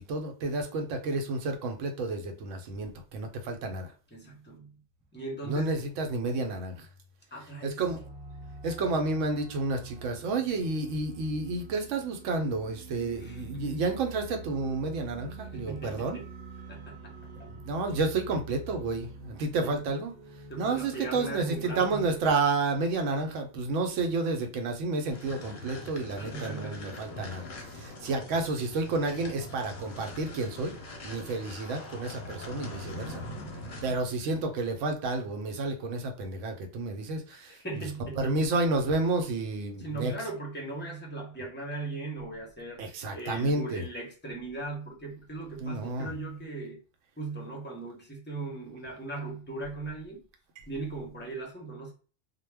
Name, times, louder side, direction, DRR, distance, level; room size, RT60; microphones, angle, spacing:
voice 1, 0.0-3.9 5.4-6.9 7.6-8.0 8.6-16.2 17.5-20.1 20.6-27.5 27.8-30.7 31.0-33.2 33.8-37.6 38.2-40.1 42.8-43.8 45.6-46.1 50.6-50.7, right 3 dB, 90° right, 4 dB, 0.9 m, -30 dB
voice 2, 4.1-4.8 5.1-5.8 7.3-7.8 13.2-13.7 15.5-16.3 16.7-17.5 19.6-20.0 20.5-22.1 26.2-26.9 27.2-27.5 37.4-38.4 39.8-46.8 47.2-50.2 50.7-51.9, right 3 dB, 15° left, -1 dB, 0.5 m, -39 dB
sound 1, 7.8-22.2, right 3 dB, 60° right, 0.8 m, -46 dB
sound 2, 25.1-34.1, left 1 dB, 50° left, 0.7 m, -42 dB
2.2 x 2.1 x 3.2 m, 0.38 s
omnidirectional pair, 1.2 m